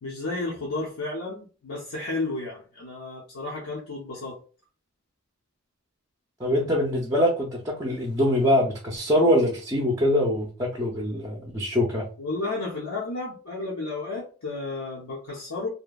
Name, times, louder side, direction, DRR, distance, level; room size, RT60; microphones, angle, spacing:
voice 1, 0.0-4.4 12.2-15.7, left 2 dB, 80° left, 0.6 m, -32 dB
voice 2, 6.4-12.0, left 1 dB, 15° right, 0.4 m, -23 dB
2.8 x 2.1 x 2.3 m
head